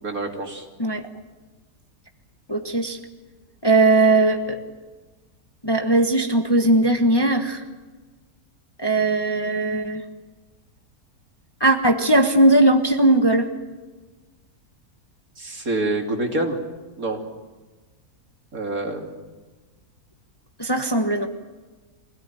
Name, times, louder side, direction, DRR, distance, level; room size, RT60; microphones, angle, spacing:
voice 1, 0.0-0.7 15.4-16.6 17.0-17.2 18.5-19.1, right 2 dB, 60° right, 2 dB, 3.3 m, -26 dB
voice 2, 2.5-3.0 3.6-4.6 5.6-7.6 8.8-10.0 11.6-13.5 20.6-21.3, right 2 dB, 15° left, 5 dB, 1.3 m, -19 dB
24.0 x 17.5 x 9.2 m, 1.2 s
omnidirectional pair, 1.7 m